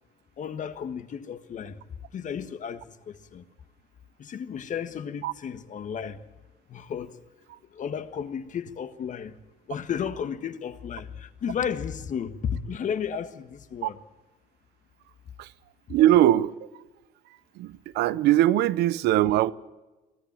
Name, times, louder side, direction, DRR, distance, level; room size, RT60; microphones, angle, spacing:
voice 1, 0.4-1.8 2.1-3.4 4.2-6.2 6.7-7.2 7.7-9.4 9.7-14.0, left 7 dB, 50° left, 1.6 m, -33 dB
voice 2, 15.9-16.5 17.6-19.5, right 13 dB, 80° right, 0.8 m, -21 dB
23.5 x 15.5 x 7.5 m
cardioid pair, 110°, 17 cm